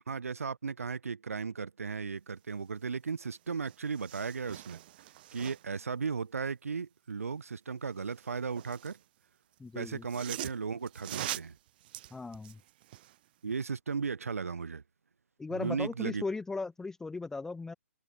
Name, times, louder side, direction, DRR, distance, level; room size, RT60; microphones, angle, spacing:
voice 1, 0.1-4.8 5.3-9.0 9.7-11.6 13.4-14.8 15.5-16.3, right 5 dB, 70° right, 2.0 m, -36 dB
sound 1, 3.2-3.3 3.6-5.8 8.0-9.0 9.8-13.2 13.6-13.7, right 15 dB, 40° right, 0.6 m, -43 dB
voice 2, 9.6-10.0 12.1-12.6 15.4-17.7, left 3 dB, 5° left, 0.7 m, -37 dB
open air
figure-of-eight pair, 130°, 8 cm